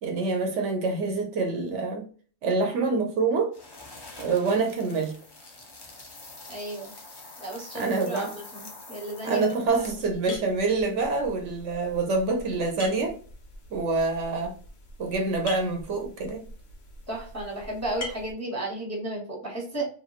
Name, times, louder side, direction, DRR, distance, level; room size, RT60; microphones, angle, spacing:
voice 1, 0.0-2.1 2.4-3.5 4.2-5.2 7.7-8.3 9.2-13.2 13.7-14.5 15.0-16.4, right 3 dB, 75° right, 0.9 m, -26 dB
sound 1, 3.5-10.1, left 2 dB, 35° left, 0.4 m, -46 dB
voice 2, 6.5-6.9 7.4-9.4 17.1-19.9, right 1 dB, 15° right, 1.1 m, -33 dB
sound 2, 9.7-18.3, left 2 dB, 90° left, 1.2 m, -44 dB
3.0 x 2.5 x 2.4 m
omnidirectional pair, 1.3 m